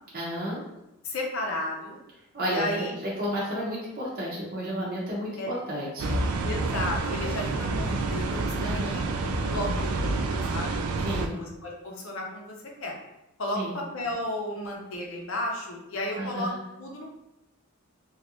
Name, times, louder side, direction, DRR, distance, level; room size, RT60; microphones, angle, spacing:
voice 1, 0.1-0.6 2.3-6.2 8.6-9.0 11.0-11.4 13.5-13.8 16.2-16.6, equal, 45° right, -5 dB, 0.7 m, -32 dB
voice 2, 1.0-2.0 2.5-2.9 5.4-5.5 6.4-10.8 11.4-12.5 12.8-12.9 13.4-16.5 16.8-17.1, left 1 dB, 65° left, 0 dB, 0.7 m, -33 dB
sound 1, 6.0-11.3, right 2 dB, 80° right, 0.4 m, -28 dB
3.0 x 2.4 x 2.9 m, 0.91 s
head